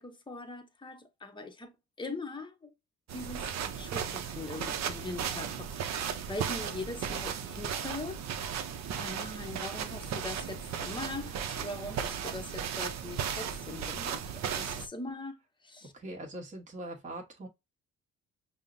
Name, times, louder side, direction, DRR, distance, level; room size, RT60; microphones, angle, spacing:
voice 1, 0.0-2.7 3.1-8.2 9.0-15.9, left 2 dB, 15° left, 0.7 m, -41 dB
sound 1, 3.1-14.9, right 8 dB, 60° right, 0.6 m, -36 dB
voice 2, 15.8-17.5, right 1 dB, 25° right, 1.1 m, -42 dB
5.4 x 2.0 x 2.5 m
cardioid pair, 90°, 30 cm